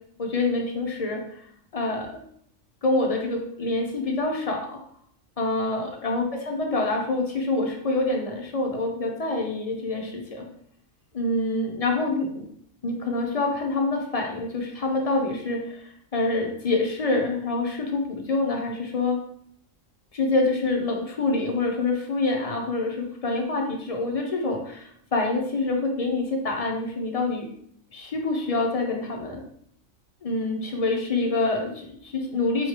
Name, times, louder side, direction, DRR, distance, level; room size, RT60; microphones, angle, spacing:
voice 1, 0.2-1.4 1.7-2.1 2.8-4.8 5.4-10.5 11.1-12.4 12.8-15.8 16.1-19.2 20.1-27.5 27.9-29.4 30.2-32.7, left 2 dB, 40° left, 1 dB, 0.5 m, -26 dB
4.3 x 3.2 x 3.1 m, 0.67 s
omnidirectional pair, 1.4 m